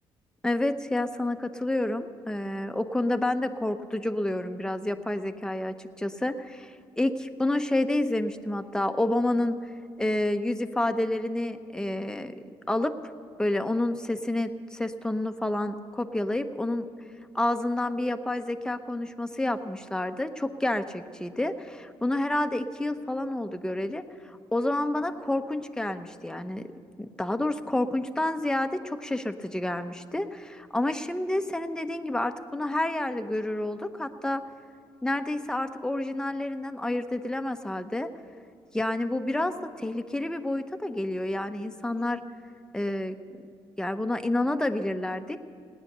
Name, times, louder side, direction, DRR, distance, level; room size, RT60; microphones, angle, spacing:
voice 1, 0.4-9.6 10.0-12.9 13.4-16.9 17.3-26.7 27.0-34.4 35.0-38.1 38.7-42.2 42.7-43.2 43.8-45.4, left 1 dB, 5° left, 7 dB, 0.9 m, -29 dB
17.5 x 9.9 x 6.7 m, 2.4 s
cardioid pair, 75°, 11 cm